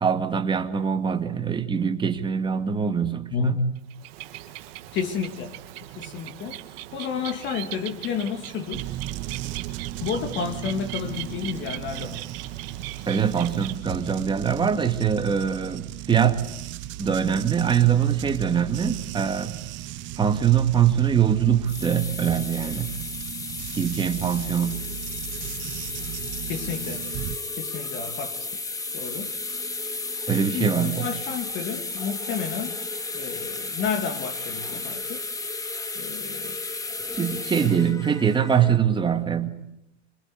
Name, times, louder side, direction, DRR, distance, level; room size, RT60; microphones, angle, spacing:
voice 1, 0.0-3.5 13.1-16.4 17.0-19.6 20.2-22.9 23.7-24.8 30.3-31.1 37.2-39.6, right 8 dB, 15° right, 2.1 m, -23 dB
voice 2, 3.3-3.7 4.9-5.6 6.0-6.6 6.9-8.9 10.0-12.3 26.5-27.1 27.6-28.5 28.9-29.3 30.5-32.8 33.1-35.2 36.0-36.6, left 6 dB, 30° left, 2.5 m, -30 dB
Bird, 3.8-13.8, right 14 dB, 50° right, 2.3 m, -39 dB
sound 1, 8.7-27.4, right 15 dB, 30° right, 1.1 m, -36 dB
sound 2, 21.5-38.8, left 3 dB, 10° left, 1.9 m, -33 dB
27.0 x 25.5 x 8.3 m
hypercardioid pair, 120°, 37 cm